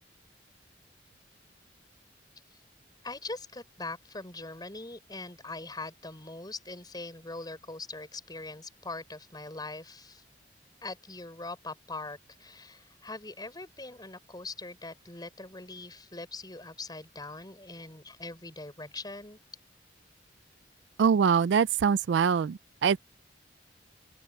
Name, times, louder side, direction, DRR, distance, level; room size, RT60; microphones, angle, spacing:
voice 1, 3.0-10.2 10.8-19.4, left 3 dB, 25° left, 6.4 m, -42 dB
voice 2, 21.0-23.0, right 6 dB, 75° right, 0.4 m, -24 dB
open air
head